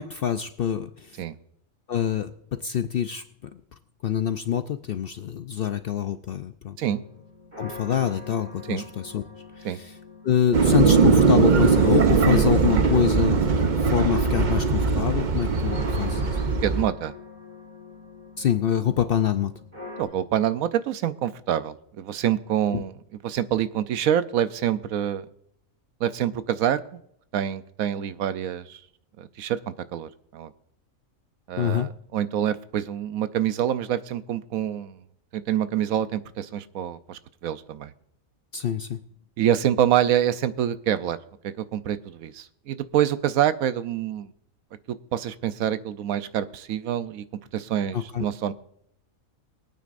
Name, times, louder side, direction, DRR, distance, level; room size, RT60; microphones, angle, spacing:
voice 1, 0.0-1.2 1.9-3.2 3.5-3.6 4.0-6.8 7.6-9.2 9.6-9.9 10.2-13.4 13.7-16.4 18.4-19.5 22.7-22.8 31.6-31.9 38.5-39.0 47.9-48.2, left 9 dB, 65° left, 10 dB, 0.6 m, -26 dB
sound 1, 6.8-20.0, left 4 dB, 25° right, 3.6 m, -43 dB
sound 2, 10.5-16.9, right 5 dB, 40° right, 0.7 m, -20 dB
voice 2, 16.6-17.1 20.0-23.0 23.2-25.3 26.0-27.0 27.3-28.8 29.2-30.5 31.5-35.0 35.3-37.9 39.4-41.2 41.4-44.3 44.9-47.2 47.5-48.5, right 10 dB, 85° right, 13 dB, 1.1 m, -26 dB
21.5 x 9.3 x 2.5 m, 0.73 s
omnidirectional pair, 1.4 m